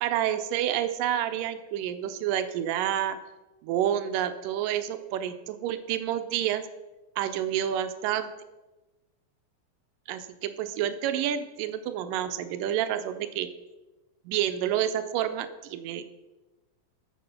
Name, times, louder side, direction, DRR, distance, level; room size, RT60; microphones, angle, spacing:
voice 1, 0.0-3.2 3.6-6.6 7.2-8.3 10.1-13.5 14.3-16.1, right 11 dB, 80° right, 10 dB, 2.2 m, -29 dB
8.2 x 6.7 x 5.7 m, 1.1 s
omnidirectional pair, 4.0 m